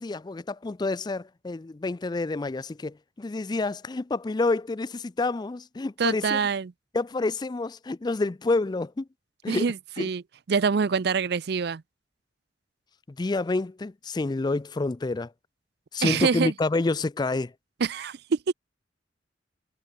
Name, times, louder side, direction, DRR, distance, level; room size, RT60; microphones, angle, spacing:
voice 1, 0.0-6.4 6.9-9.1 9.4-9.7 10.0-10.1 13.2-15.3 15.9-17.5, left 3 dB, 25° left, 0.4 m, -28 dB
voice 2, 6.0-6.7 9.5-10.2 10.5-11.8 16.0-16.5 17.8-18.5, right 5 dB, 65° right, 0.5 m, -25 dB
head